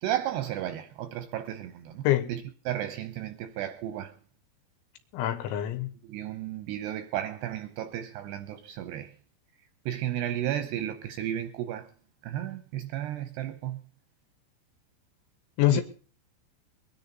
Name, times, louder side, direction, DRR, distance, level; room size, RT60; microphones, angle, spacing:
voice 1, 0.0-4.1 6.0-9.1 9.9-11.9 12.2-13.8 15.7-15.8, right 12 dB, 80° right, 2.5 m, -33 dB
voice 2, 5.1-5.9 15.6-15.8, left 15 dB, 75° left, 3.4 m, -25 dB
22.5 x 10.0 x 4.0 m
omnidirectional pair, 5.6 m